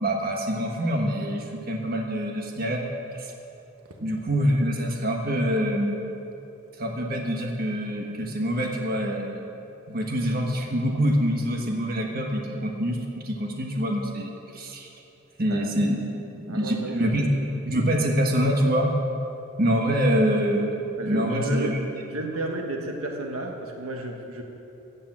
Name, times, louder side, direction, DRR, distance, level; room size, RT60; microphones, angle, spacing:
voice 1, 0.0-2.8 3.1-3.3 4.0-5.9 6.8-9.5 9.9-13.0 13.2-14.9 15.4-19.0 19.6-20.7 21.0-21.8, equal, 45° right, 1 dB, 1.5 m, -25 dB
voice 2, 16.5-17.0 21.0-21.8 22.1-24.4, right 2 dB, 90° right, 2 dB, 1.4 m, -32 dB
15.0 x 8.6 x 7.5 m, 2.9 s
head